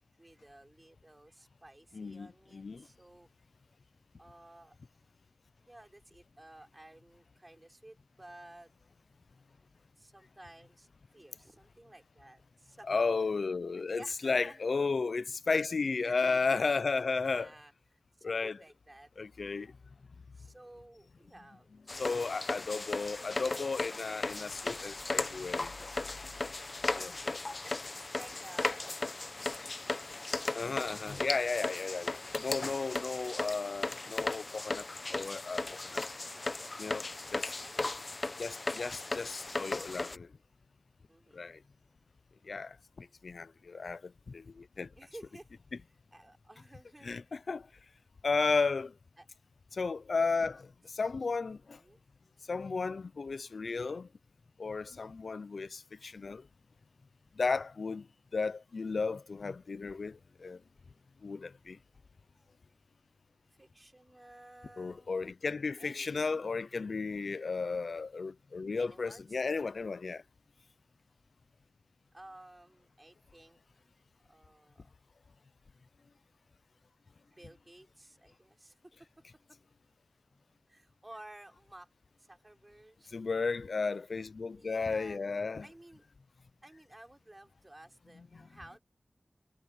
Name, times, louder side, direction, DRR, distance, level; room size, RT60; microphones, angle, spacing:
voice 1, 0.2-3.3 4.2-4.8 5.7-8.7 10.0-10.9 11.1-13.0 13.7-14.6 16.0-16.8 17.2-17.7 18.1-19.1 20.3-21.7 22.5-22.6 22.9-24.3 26.8-27.1 27.6-30.5 31.9-32.2 32.5-32.6 37.6-37.9 38.6-39.0 41.1-41.5 45.0-45.7 46.1-47.2 49.2-49.3 50.5-50.6 51.7-52.0 62.2-62.4 63.6-65.1 65.8-66.3 68.7-70.0 72.1-73.8 74.2-74.9 77.3-79.6 80.7-83.1 84.0-84.1 84.5-85.2 85.6-86.1 86.6-88.8, right 1 dB, 25° right, 6.1 m, -55 dB
voice 2, 1.9-2.8 12.9-17.5 18.2-18.6 19.2-19.7 21.9-25.7 27.0-27.4 30.5-34.8 35.1-35.6 35.9-36.0 36.8-37.0 37.3-37.5 38.4-40.3 41.3-41.6 42.5-44.9 47.0-47.7 48.2-48.9 49.7-50.7 50.9-51.8 52.5-54.1 54.6-56.4 57.4-58.1 58.3-60.6 61.2-61.8 64.8-70.2 83.1-85.7, left 4 dB, 80° left, 0.5 m, -34 dB
sound 1, 21.9-40.2, left 2 dB, 55° left, 1.1 m, -37 dB
cardioid pair, 45°, 0 cm